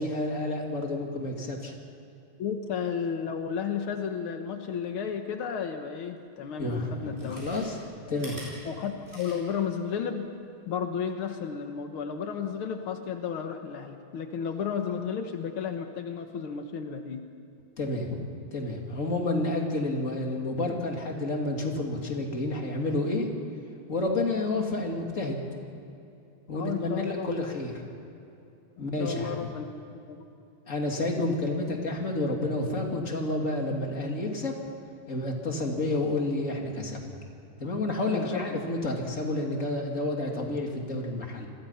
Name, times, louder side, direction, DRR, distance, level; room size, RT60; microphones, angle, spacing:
voice 1, 0.0-1.7 6.6-7.8 8.1-8.4 17.8-18.2 18.5-23.3 23.9-25.4 26.5-27.8 28.8-29.5 30.7-34.5 35.1-37.2 37.6-41.5, left 2 dB, 35° left, 1 dB, 3.1 m, -30 dB
voice 2, 2.4-7.4 8.1-8.2 8.7-10.4 10.7-17.3 26.5-27.3 28.8-30.2 38.1-38.7, left 7 dB, 85° left, 5 dB, 2.1 m, -33 dB
Chewing mastication, 6.3-6.4 7.0-9.7 10.0-10.1, equal, 25° right, 8.0 m, -46 dB
29.5 x 22.5 x 5.8 m, 2.7 s
omnidirectional pair, 2.3 m